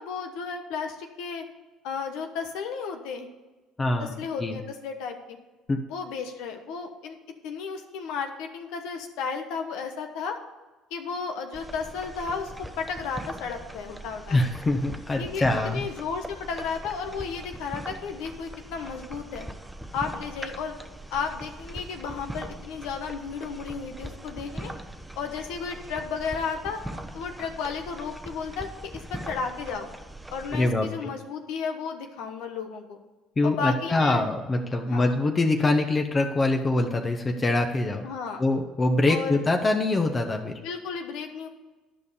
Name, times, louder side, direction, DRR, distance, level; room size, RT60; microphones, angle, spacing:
voice 1, 0.0-1.4 1.8-3.3 4.0-5.4 5.9-7.2 7.4-10.4 10.9-12.5 12.8-14.4 15.2-19.5 19.9-20.8 21.1-24.7 25.2-26.8 27.1-29.9 30.3-33.0 33.4-34.3 34.9-35.1 38.0-38.4 39.1-39.4 40.6-41.5, left 5 dB, 75° left, 5 dB, 1.1 m, -33 dB
voice 2, 3.8-4.1 4.4-4.6 5.7-5.8 14.3-15.8 30.5-30.9 33.4-38.1 38.4-40.5, left 2 dB, 30° left, 4 dB, 1.0 m, -24 dB
sound 1, 11.5-30.7, right 1 dB, 5° right, 0.9 m, -41 dB
11.0 x 5.4 x 6.8 m, 1.2 s
hypercardioid pair, 65°, 0 cm